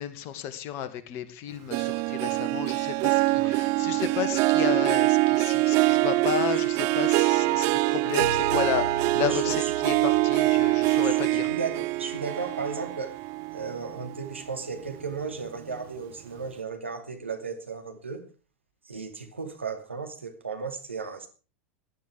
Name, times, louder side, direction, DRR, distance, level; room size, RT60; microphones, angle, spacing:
voice 1, 0.0-11.5, left 10 dB, 45° left, 2.2 m, -33 dB
Harp, 1.7-14.4 14.9-15.3 15.7-15.8, right 21 dB, 45° right, 0.7 m, -24 dB
sound 1, 8.2-12.7, left 3 dB, 90° left, 0.8 m, -41 dB
voice 2, 9.2-9.5 11.0-11.2 11.5-13.1 13.5-18.3 18.8-21.3, right 4 dB, 85° right, 2.6 m, -35 dB
16.5 x 11.0 x 4.8 m
figure-of-eight pair, 85°, 6 cm